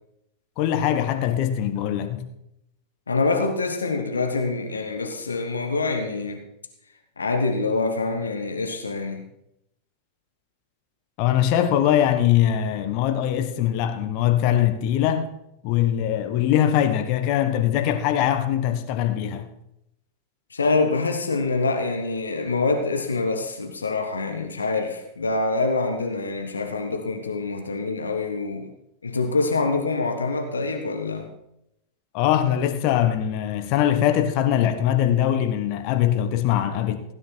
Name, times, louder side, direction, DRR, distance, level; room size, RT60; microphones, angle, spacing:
voice 1, 0.6-2.3 11.2-15.3 15.6-19.5 32.1-37.0, left 11 dB, 45° left, 1.3 m, -22 dB
voice 2, 3.1-6.4 7.2-9.2 20.5-28.7 29.0-31.3, left 3 dB, 75° left, 1.4 m, -25 dB
16.5 x 9.9 x 4.6 m
figure-of-eight pair, 90°, 0 cm